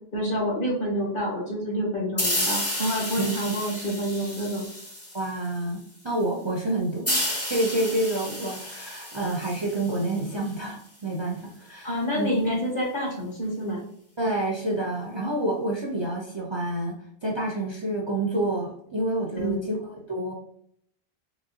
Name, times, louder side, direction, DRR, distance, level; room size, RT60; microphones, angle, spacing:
voice 1, 0.1-4.7 11.8-13.8 19.3-19.7, equal, 55° left, -3 dB, 1.6 m, -28 dB
sound 1, 2.2-5.6 7.0-10.5, left 1 dB, 15° left, 0.7 m, -31 dB
voice 2, 5.1-5.8 6.0-7.2 7.5-12.7 14.2-16.9 17.2-20.3, right 1 dB, 35° right, -1 dB, 0.5 m, -28 dB
3.9 x 3.1 x 2.7 m, 0.67 s
omnidirectional pair, 1.0 m